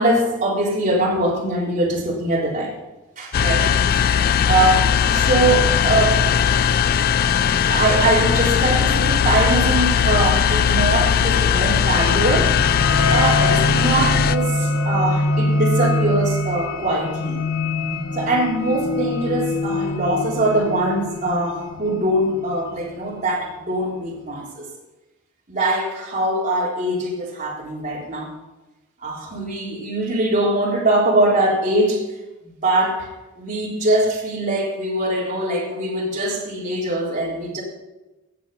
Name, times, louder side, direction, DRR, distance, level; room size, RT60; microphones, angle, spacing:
voice 1, 0.0-2.8 3.2-4.1 4.5-6.2 7.7-12.5 12.8-17.4 18.1-24.7 25.5-28.3 29.0-32.0 32.4-33.1 33.4-37.6, right 1 dB, 35° right, -5 dB, 3.8 m, -22 dB
sound 1, 3.3-14.4, left 8 dB, 45° left, 0.4 m, -18 dB
sound 2, 11.9-23.2, left 2 dB, 65° left, 1.1 m, -24 dB
17.0 x 7.6 x 5.7 m, 1.1 s
head